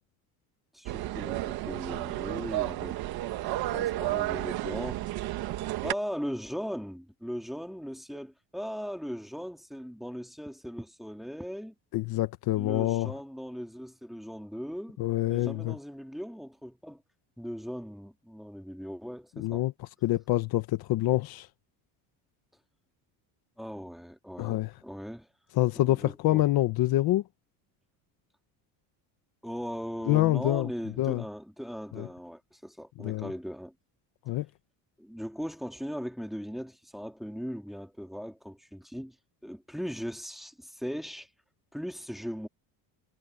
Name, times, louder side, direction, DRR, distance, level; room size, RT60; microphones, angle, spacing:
voice 1, 0.7-3.0 3.6-5.1 5.8-11.7 12.6-15.0 15.2-17.0 17.4-19.6 23.6-25.3 25.8-26.4 29.4-33.7 35.0-39.2 39.4-41.3 41.7-42.5, equal, ahead, 2.4 m, -38 dB
sound 1, 0.9-5.9, right 15 dB, 60° right, 1.5 m, -32 dB
voice 2, 11.9-13.1 15.0-15.7 19.4-19.7 20.0-21.5 24.4-24.7 25.6-27.2 30.1-30.7 31.0-31.2 31.9-32.1 33.0-33.3 34.3-34.5, left 16 dB, 60° left, 1.3 m, -26 dB
cardioid pair, 145°, 41 cm